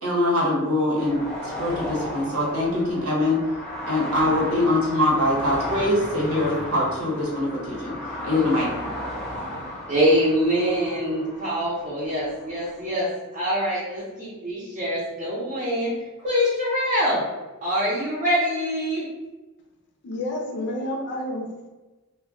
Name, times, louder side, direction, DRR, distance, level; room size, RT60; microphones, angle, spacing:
voice 1, 0.0-3.4 3.9-7.9 8.2-8.7, left 1 dB, 75° right, -4 dB, 1.0 m, -23 dB
sound 1, 1.0-12.9, left 1 dB, 5° left, 0.7 m, -35 dB
voice 2, 9.9-15.9 16.2-17.2 17.6-19.1, equal, 35° right, -8 dB, 0.6 m, -24 dB
voice 3, 20.0-21.7, left 1 dB, 55° left, 1 dB, 0.5 m, -30 dB
2.2 x 2.1 x 3.6 m, 1.2 s
head